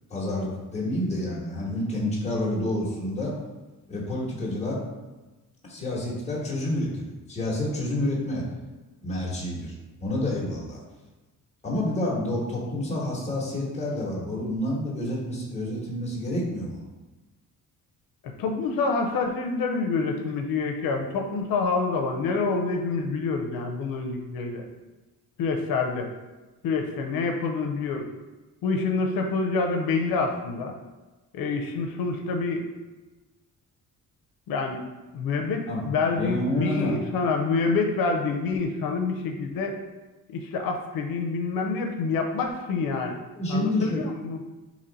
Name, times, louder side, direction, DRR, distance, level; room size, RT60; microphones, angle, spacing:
voice 1, 0.1-3.3 3.9-4.8 5.7-8.4 9.0-10.8 11.6-16.8 35.7-35.9 36.2-37.0 43.3-44.1, left 1 dB, 20° left, -5 dB, 1.1 m, -28 dB
voice 2, 18.4-24.6 25.4-26.1 26.6-28.1 28.6-30.7 31.3-32.6 34.5-34.8 35.1-39.7 40.3-43.2 43.5-44.4, left 4 dB, 90° left, 3 dB, 0.6 m, -27 dB
4.3 x 3.0 x 3.9 m, 1.2 s
cardioid pair, 175°, 34 cm